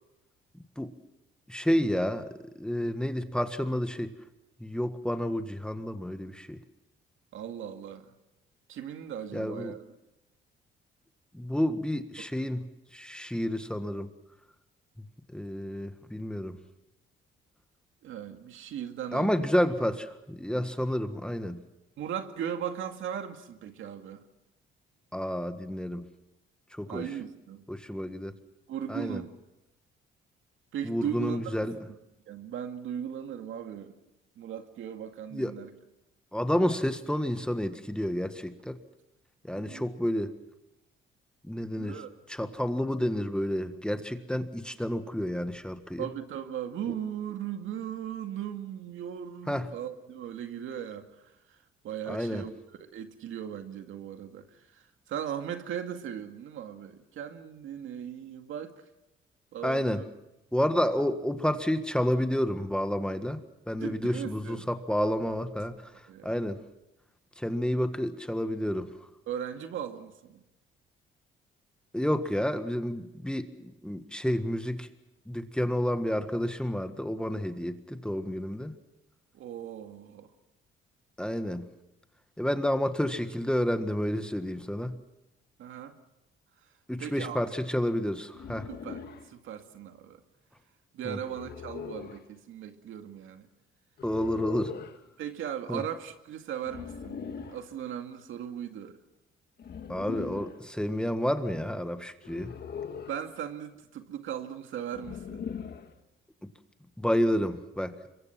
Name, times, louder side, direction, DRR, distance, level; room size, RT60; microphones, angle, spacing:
voice 1, 1.5-2.3 2.6-4.1 4.6-6.6 9.3-9.7 11.3-12.6 12.9-14.1 15.3-16.6 19.1-21.6 25.1-26.1 26.7-27.0 27.7-28.3 28.9-29.2 30.8-31.7 35.3-35.5 36.3-38.8 39.5-40.3 41.4-42.0 42.3-46.1 49.5-49.7 52.1-52.4 59.6-60.0 60.5-63.4 63.7-65.7 66.2-66.6 67.4-68.9 71.9-74.9 75.3-78.7 81.2-81.7 82.4-84.9 86.9-88.7 91.0-91.2 94.0-94.7 95.7-95.8 99.9-102.5 107.0-107.9, equal, 5° left, 1.6 m, -30 dB
voice 2, 7.3-8.1 8.7-9.8 12.2-12.3 18.0-19.5 22.0-24.2 26.9-27.6 28.7-29.3 30.7-31.6 32.3-34.0 34.4-35.7 39.5-39.8 41.8-42.1 46.0-58.8 59.5-60.0 63.8-64.7 65.2-65.3 66.1-66.4 69.3-70.4 79.3-80.3 85.6-85.9 87.0-87.6 88.7-90.2 90.9-93.5 95.2-99.0 103.1-105.4, right 9 dB, 75° right, 2.2 m, -38 dB
sound 1, 88.3-89.3 91.2-92.2 94.0-95.0 96.6-97.6 99.6-100.6 102.2-103.3 104.9-105.9, left 6 dB, 50° left, 1.8 m, -40 dB
26.0 x 23.0 x 6.0 m
cardioid pair, 100°, 21 cm